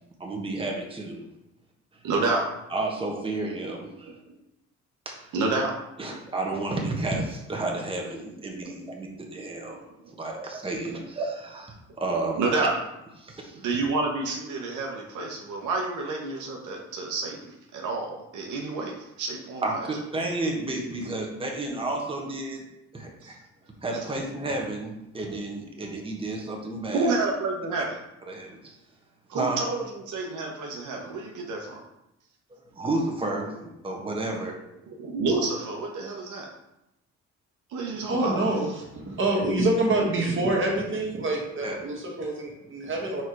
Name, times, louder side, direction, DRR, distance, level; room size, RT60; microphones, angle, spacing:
voice 1, 0.2-1.3 2.7-4.2 5.0-5.3 6.0-9.8 10.2-12.7 13.2-13.6 19.6-23.3 23.8-27.2 28.3-28.8 29.3-29.6 32.7-34.5 41.6-41.8, right 2 dB, 20° right, -1 dB, 1.3 m, -31 dB
voice 2, 2.0-2.5 5.3-5.7 12.4-12.7 13.6-19.9 20.9-21.0 26.9-27.9 29.3-31.8 34.9-36.5 37.7-38.4, right 3 dB, 75° right, 0 dB, 1.1 m, -29 dB
voice 3, 38.1-43.2, right 2 dB, 40° right, -1 dB, 1.9 m, -26 dB
4.6 x 4.5 x 4.7 m, 0.88 s
cardioid pair, 90°, 30 cm